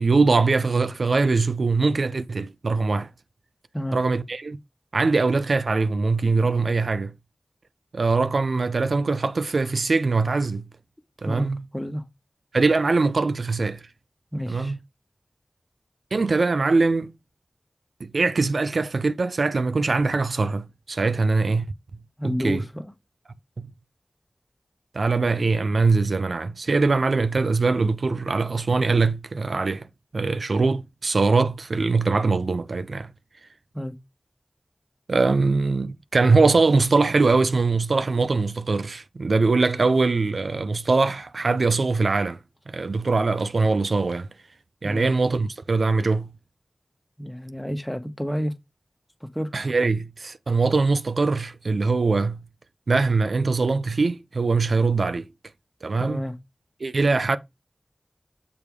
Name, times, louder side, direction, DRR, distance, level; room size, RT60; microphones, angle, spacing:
voice 1, 0.0-3.1 3.9-4.6 4.9-7.1 7.9-10.7 11.2-11.6 12.5-13.8 14.5-14.8 16.1-17.1 18.0-21.7 22.2-22.6 23.6-23.7 24.9-29.9 30.1-33.1 35.1-42.4 42.7-44.3 44.8-46.3 49.5-52.4 52.9-55.3 55.8-56.2 56.8-57.4, right 3 dB, 85° right, 0.5 m, -22 dB
voice 2, 11.7-12.0 14.3-14.7 22.2-22.9 33.7-33.9 44.8-45.1 47.2-48.5 49.2-49.5 56.0-56.4, equal, 5° left, 1.4 m, -30 dB
6.9 x 3.4 x 4.7 m
wide cardioid pair, 55°, 0 cm